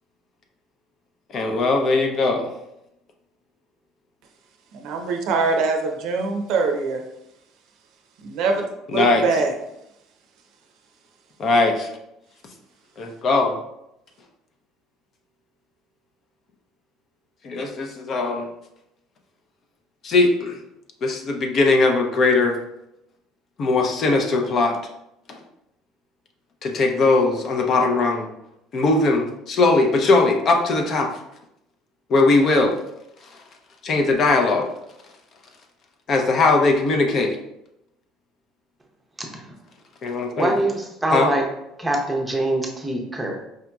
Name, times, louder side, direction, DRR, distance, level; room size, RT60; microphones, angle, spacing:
voice 1, 1.3-2.5 6.2-6.3 8.9-9.2 11.4-11.9 13.0-13.5 17.4-18.5 20.0-20.6 21.0-22.6 23.6-24.8 26.6-28.3 28.7-31.1 32.1-32.7 33.8-34.7 36.1-37.4 40.0-40.5 41.1-41.3, left 3 dB, 40° left, 3 dB, 0.6 m, -19 dB
voice 2, 4.7-7.0 8.2-9.5, right 4 dB, 65° right, 3 dB, 0.6 m, -23 dB
voice 3, 40.4-41.4 41.8-43.5, right 1 dB, 10° right, 0 dB, 0.7 m, -24 dB
4.7 x 2.8 x 2.2 m, 0.83 s
cardioid pair, 125°, 0 cm